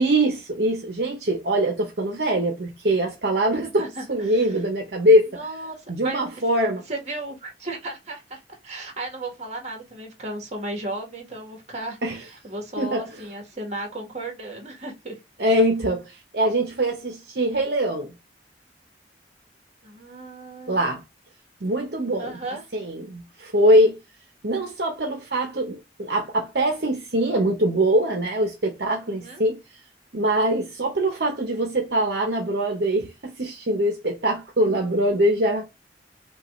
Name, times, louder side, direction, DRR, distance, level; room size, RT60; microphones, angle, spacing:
voice 1, 0.0-3.8 4.1-5.3 5.9-6.8 12.0-12.2 12.8-13.1 15.4-18.2 20.7-21.0 21.6-22.4 22.7-24.0 24.4-29.6 30.1-35.7, right 1 dB, 65° right, 0.8 m, -23 dB
voice 2, 3.5-4.6 5.3-6.2 6.9-15.2 19.8-20.9 22.2-22.6 29.0-29.4, right 2 dB, 40° right, 1.5 m, -35 dB
5.5 x 2.4 x 3.0 m
head